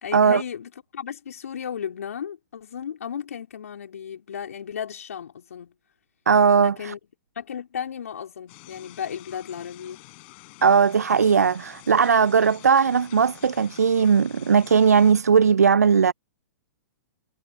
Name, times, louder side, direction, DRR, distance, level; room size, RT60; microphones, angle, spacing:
voice 1, 0.0-5.7 6.6-7.0 7.4-10.0, left 8 dB, 70° left, 3.9 m, -34 dB
voice 2, 6.3-6.9 10.6-16.1, right 6 dB, 80° right, 0.4 m, -18 dB
sound 1, 8.5-15.1, left 25 dB, 45° left, 7.0 m, -48 dB
figure-of-eight pair, 115°, 8 cm